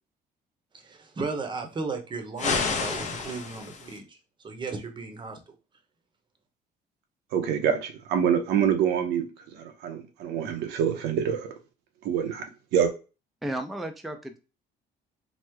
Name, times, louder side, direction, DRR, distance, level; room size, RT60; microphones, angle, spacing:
voice 1, 0.7-4.2 4.4-5.5, right 4 dB, 30° right, 0.8 m, -35 dB
sound 1, 2.4-4.0, left 5 dB, 45° left, 0.7 m, -29 dB
voice 2, 7.3-9.3 9.5-11.5 12.0-12.5 12.7-12.9, right 8 dB, 85° right, 0.7 m, -26 dB
voice 3, 13.4-14.4, right 1 dB, ahead, 0.4 m, -33 dB
3.1 x 2.0 x 3.3 m
cardioid pair, 110°, 17 cm